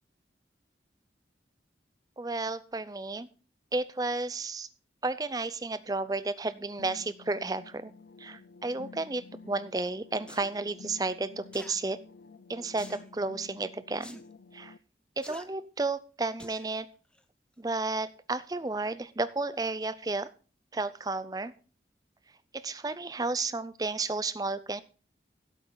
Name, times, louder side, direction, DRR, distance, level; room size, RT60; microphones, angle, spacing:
voice 1, 2.2-3.3 3.7-4.7 5.0-7.9 8.2-12.0 12.5-14.2 14.5-14.7 15.2-16.9 17.6-20.3 20.7-21.5 22.5-24.8, right 3 dB, 20° right, 15 dB, 0.5 m, -32 dB
sound 1, 6.8-14.8, left 4 dB, 80° left, 0.5 m, -51 dB
sound 2, 10.3-10.5 11.5-11.8 12.8-13.1 14.0-14.2 15.2-15.5 16.4-16.7 17.1-17.2, left 1 dB, 5° left, 0.8 m, -47 dB
16.0 x 8.2 x 3.9 m, 0.38 s
head